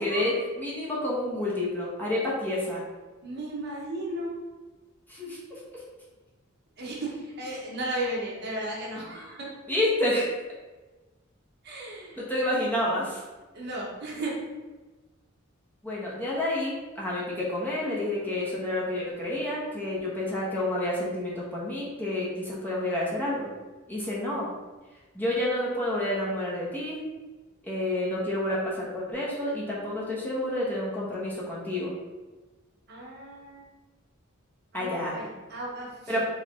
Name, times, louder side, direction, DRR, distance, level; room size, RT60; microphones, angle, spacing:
voice 1, 0.0-2.8 5.1-5.4 5.7-5.8 9.7-10.3 12.2-13.2 15.8-23.5 23.9-24.5 25.1-27.0 27.6-31.9 34.7-35.2 36.1-36.2, left 1 dB, 10° left, -6 dB, 1.1 m, -29 dB
voice 2, 3.2-4.4 6.8-7.1 7.4-9.5 11.6-12.2 13.5-14.4 32.9-33.7 34.7-36.2, right 1 dB, 50° right, -3 dB, 1.1 m, -35 dB
4.4 x 3.3 x 3.7 m, 1.2 s
head